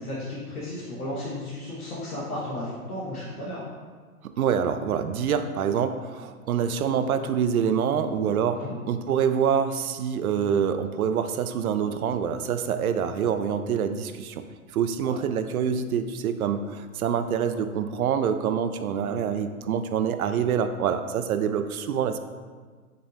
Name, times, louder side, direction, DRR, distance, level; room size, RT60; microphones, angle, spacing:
voice 1, 0.0-3.6 8.5-8.8 15.0-15.2, left 1 dB, 80° left, -7 dB, 1.2 m, -34 dB
voice 2, 4.4-14.4 14.7-22.2, right 7 dB, 70° right, 9 dB, 0.5 m, -26 dB
5.5 x 3.3 x 2.4 m, 1.5 s
hypercardioid pair, 120°, 44 cm